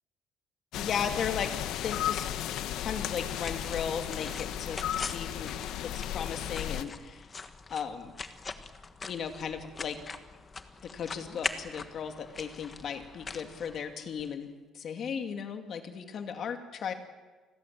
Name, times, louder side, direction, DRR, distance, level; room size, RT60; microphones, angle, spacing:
sound 1, 0.7-6.8, left 11 dB, 75° left, 1.2 m, -34 dB
voice 1, 0.7-1.5 1.8-2.3 2.8-7.3 7.7-8.1 9.0-10.0 10.8-16.9, left 7 dB, 45° left, 6 dB, 2.5 m, -36 dB
sound 2, 3.0-14.3, left 4 dB, 20° left, 1.4 m, -42 dB
29.5 x 21.5 x 7.7 m, 1.3 s
cardioid pair, 170°, 0 cm